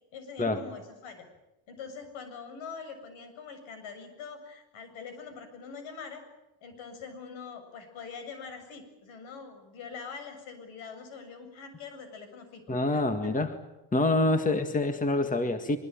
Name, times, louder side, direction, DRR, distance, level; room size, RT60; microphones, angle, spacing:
voice 1, 0.1-1.3 1.7-6.2 6.6-13.4, left 5 dB, 70° left, 8 dB, 7.4 m, -44 dB
voice 2, 12.7-13.5 13.9-15.8, left 2 dB, 15° left, 8 dB, 1.9 m, -26 dB
24.5 x 22.5 x 9.0 m, 0.97 s
cardioid pair, 105°, 49 cm